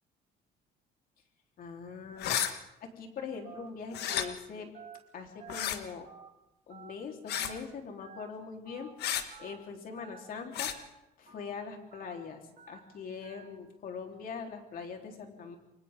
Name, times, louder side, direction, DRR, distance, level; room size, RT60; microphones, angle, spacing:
voice 1, 1.6-4.7 5.1-6.1 6.7-8.9 9.4-10.7 11.2-15.6, left 5 dB, 60° left, 2 dB, 3.8 m, -42 dB
sound 1, 2.2-2.5 3.9-4.3 5.5-5.8 7.3-7.6 9.0-9.2 10.5-10.8, left 10 dB, 75° left, 1.6 m, -31 dB
Telephone, 3.4-3.7 4.1-4.3 4.7-5.0 5.4-5.6 6.0-6.3 6.7-6.9 7.4-7.6 8.0-8.2 8.7-8.9 9.3-9.5 10.0-10.2 10.6-10.8 11.3-11.5 11.9-12.1 12.6-12.8 13.2-13.4, right 7 dB, 50° right, 5.2 m, -50 dB
30.0 x 23.5 x 3.8 m, 0.92 s
cardioid pair, 110°, 17 cm